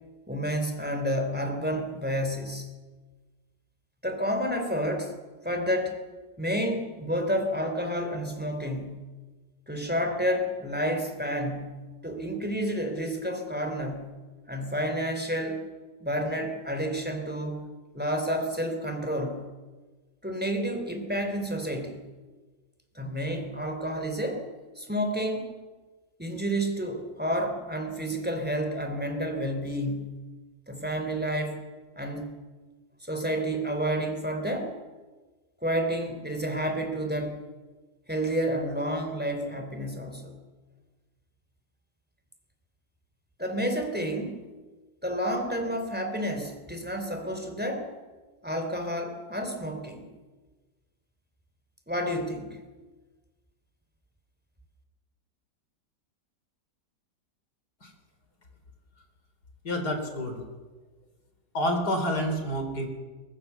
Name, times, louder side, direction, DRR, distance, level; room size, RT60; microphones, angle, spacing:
voice 1, 0.3-2.7 4.0-5.1 5.4-6.0 6.4-9.1 9.7-14.2 14.5-15.6 16.0-17.6 17.9-19.5 20.2-22.0 23.0-24.4 24.8-25.5 26.2-30.3 30.7-31.7 32.0-32.3 33.0-34.7 35.6-37.4 38.1-40.3 43.4-44.5 45.0-47.9 48.4-50.1 51.9-52.6, equal, 5° right, 4 dB, 3.6 m, -30 dB
voice 2, 59.6-60.4 61.5-62.9, equal, 65° left, 4 dB, 4.6 m, -28 dB
22.5 x 21.5 x 7.1 m, 1.3 s
omnidirectional pair, 1.8 m